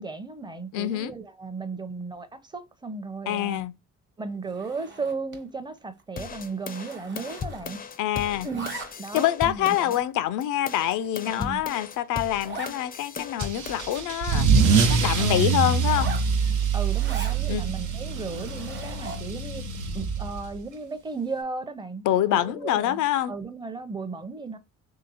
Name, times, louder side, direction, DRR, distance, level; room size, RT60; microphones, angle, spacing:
voice 1, 0.0-3.7 4.2-7.8 8.4-10.0 11.2-11.6 15.2-15.5 16.7-19.7 19.9-22.0 22.3-24.6, right 4 dB, 15° right, 0.6 m, -35 dB
voice 2, 0.7-1.1 3.3-3.7 8.0-8.5 9.1-16.1 17.4-17.7 22.0-23.3, left 12 dB, 85° left, 0.5 m, -26 dB
Zipper (clothing), 4.5-5.5 5.8-6.0 6.3-8.0 8.2-9.2 9.8-9.9 10.5-10.6 11.0-11.1 11.4-11.5 11.7-11.8 12.4-12.8 13.2-13.3 13.5-14.8 15.8-17.4 18.0-19.4, right 3 dB, 40° right, 1.0 m, -41 dB
sound 1, 6.2-10.0 10.4-14.0, left 6 dB, 30° left, 0.4 m, -37 dB
Car / Engine starting / Accelerating revving vroom, 13.4-20.6, right 5 dB, 80° right, 0.8 m, -24 dB
3.2 x 2.8 x 4.1 m
cardioid pair, 90°, 30 cm